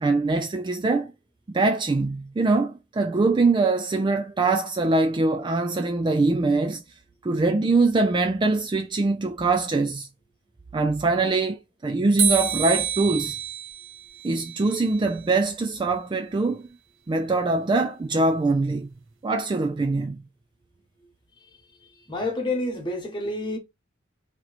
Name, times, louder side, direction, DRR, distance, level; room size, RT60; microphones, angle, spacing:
voice 1, 0.0-1.1 1.5-6.8 7.2-10.1 10.7-13.4 14.2-16.6 17.1-18.9 19.2-20.2, right 3 dB, 25° right, 0.3 m, -23 dB
sound 1, 12.2-15.3, right 7 dB, 70° right, 0.7 m, -28 dB
voice 2, 22.1-23.6, left 2 dB, 25° left, 1.2 m, -28 dB
2.9 x 2.9 x 3.9 m
head